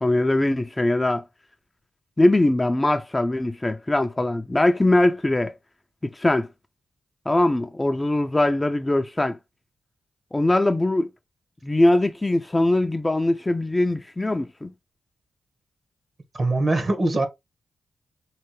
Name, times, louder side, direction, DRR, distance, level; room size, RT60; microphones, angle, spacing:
voice 1, 0.0-1.2 2.2-5.5 6.1-6.5 7.3-9.4 10.3-11.1 11.6-14.7, left 1 dB, 20° left, 0.5 m, -21 dB
voice 2, 16.3-17.3, right 2 dB, 45° right, 1.2 m, -22 dB
3.7 x 3.3 x 3.1 m
cardioid pair, 75°, 0 cm